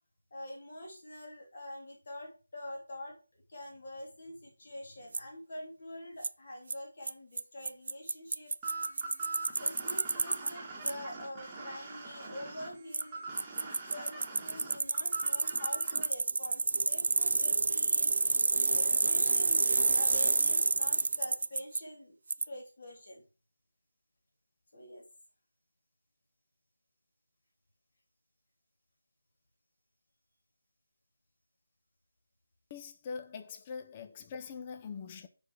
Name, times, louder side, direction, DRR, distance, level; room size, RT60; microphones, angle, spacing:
voice 1, 0.3-8.5 9.6-13.3 13.6-18.1 18.7-22.2 22.5-23.3 24.7-25.0, left 1 dB, 45° left, 3.1 m, -46 dB
Bicycle, 5.1-5.2 6.2-6.3 6.7-6.8 7.1-7.2 7.4-7.5 7.7-10.5 10.9-11.0 12.9-13.0 13.4-21.8 22.3-22.4, right 3 dB, 50° right, 0.3 m, -29 dB
sound 1, 8.6-16.1, right 3 dB, 10° right, 1.6 m, -43 dB
voice 2, 32.7-35.3, left 5 dB, 20° left, 0.6 m, -43 dB
7.1 x 5.2 x 5.0 m
figure-of-eight pair, 170°, 0 cm